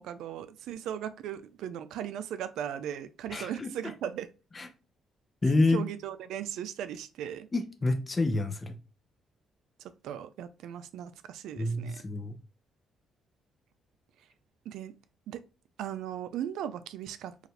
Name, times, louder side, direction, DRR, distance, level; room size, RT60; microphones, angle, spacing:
voice 1, 0.0-4.3 5.7-7.5 10.0-12.0 14.7-14.9 15.3-15.4 15.8-17.5, right 10 dB, 85° right, 0.4 m, -37 dB
voice 2, 3.3-3.7 4.5-4.7 5.4-5.8 7.5-8.7 11.6-12.4, left 2 dB, 30° left, 0.7 m, -28 dB
4.7 x 2.5 x 3.3 m
cardioid pair, 90°, 0 cm